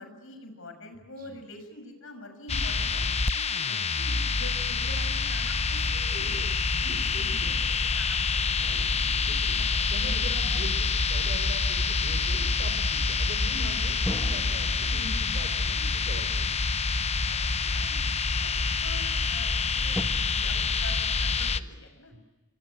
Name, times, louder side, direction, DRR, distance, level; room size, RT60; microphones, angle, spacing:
voice 1, 0.0-6.5 6.9-7.6 7.9-8.7 9.0-9.2 9.6-9.7 10.0-10.1 11.8-11.9 13.9-14.2 17.1-22.1, left 2 dB, 70° left, 8 dB, 6.2 m, -46 dB
sound 1, 2.5-21.6, left 4 dB, 30° left, 0.9 m, -27 dB
voice 2, 6.7-7.5 8.6-9.0 9.2-9.6 9.9-16.6 17.8-18.0 22.1-22.2, equal, 45° right, 8 dB, 5.2 m, -42 dB
sound 2, 8.6-11.2 14.0-17.4 18.1-18.2 19.9-20.0, equal, 10° left, 2.0 m, -42 dB
27.5 x 24.5 x 7.8 m, 1.2 s
head